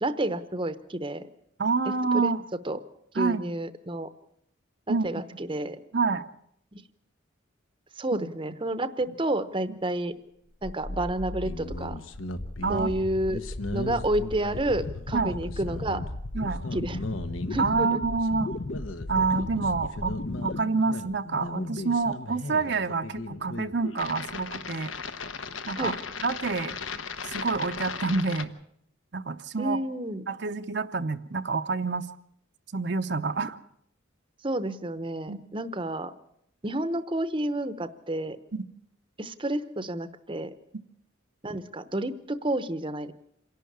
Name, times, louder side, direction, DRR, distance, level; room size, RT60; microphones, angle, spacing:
voice 1, 0.0-1.3 1.9-2.3 2.6-2.8 3.1-4.1 4.9-5.8 6.7-6.8 8.0-10.2 10.6-12.0 12.7-13.4 13.7-16.0 16.7-17.0 17.5-18.0 25.8-25.9 29.6-30.2 34.4-36.1 36.6-38.4 39.2-40.5 41.4-43.1, right 1 dB, 25° right, 12 dB, 0.8 m, -30 dB
voice 2, 1.6-2.4 3.1-3.5 4.9-5.1 5.9-6.3 8.1-8.3 12.6-12.9 15.1-15.3 16.3-16.6 17.6-18.5 19.1-20.1 20.4-24.9 25.7-26.8 27.2-28.5 29.1-29.8 30.3-32.1 32.7-33.6 35.3-35.4 38.5-38.6, right 4 dB, 55° right, 7 dB, 0.7 m, -27 dB
sound 1, 10.6-20.6, left 2 dB, 45° left, 0.7 m, -36 dB
sound 2, 11.4-28.4, left 3 dB, 75° left, 1.1 m, -37 dB
27.0 x 11.5 x 8.6 m, 0.73 s
head